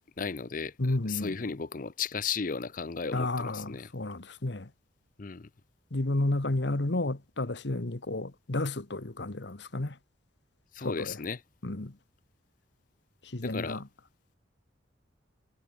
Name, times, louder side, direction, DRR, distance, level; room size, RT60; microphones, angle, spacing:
voice 1, 0.2-3.9 5.2-5.5 10.7-11.4 13.4-13.8, left 5 dB, 45° left, 0.6 m, -35 dB
voice 2, 0.8-1.4 3.1-4.7 5.9-10.0 10.8-11.2 11.6-12.0 13.2-13.8, left 2 dB, 60° left, 1.3 m, -31 dB
head